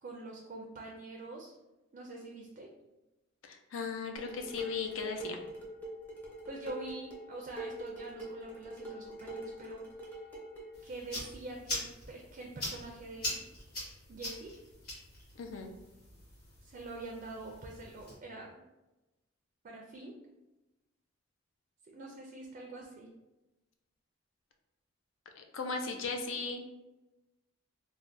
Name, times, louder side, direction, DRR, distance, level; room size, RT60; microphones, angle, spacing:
voice 1, 0.0-1.6 1.9-2.7 6.5-10.1 10.8-13.4 14.1-14.5 16.6-18.6 19.6-20.1 21.9-23.1, right 2 dB, 45° right, 0 dB, 0.4 m, -45 dB
voice 2, 3.4-5.4 15.4-15.7 25.4-26.6, left 4 dB, 80° left, 4 dB, 0.4 m, -37 dB
Dishes pots and pans, 4.2-10.8, right 1 dB, 10° left, 0.6 m, -44 dB
sound 1, 10.7-18.1, left 1 dB, 50° left, 1.4 m, -43 dB
3.3 x 2.1 x 2.5 m, 1.0 s
head